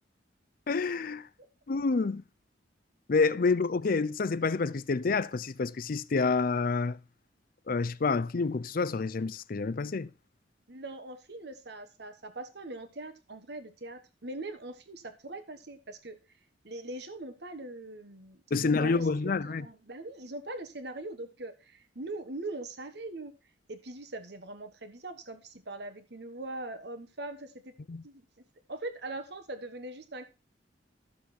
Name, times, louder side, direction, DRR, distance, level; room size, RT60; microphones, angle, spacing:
voice 1, 0.7-1.3 1.7-2.2 3.1-7.0 7.7-10.1 18.5-19.7 27.9-28.0, left 4 dB, 50° left, 0.5 m, -28 dB
voice 2, 10.7-16.2 16.6-19.1 19.4-23.3 23.7-27.7 28.0-28.3 28.7-30.3, right 2 dB, 60° right, 1.5 m, -41 dB
13.0 x 7.1 x 4.3 m
head